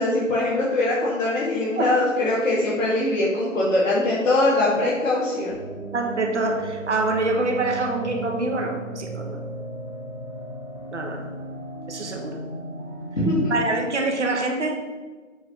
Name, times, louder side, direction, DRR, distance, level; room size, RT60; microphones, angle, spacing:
voice 1, 0.0-5.5 13.2-13.5, left 2 dB, 70° left, -7 dB, 2.3 m, -22 dB
sound 1, 5.5-13.5, right 2 dB, 20° left, 0.7 m, -36 dB
voice 2, 5.9-9.4 10.9-11.3 11.9-12.4 13.5-14.8, right 2 dB, 60° right, 3 dB, 1.2 m, -25 dB
7.7 x 3.7 x 5.9 m, 1.4 s
figure-of-eight pair, 165°, 40 cm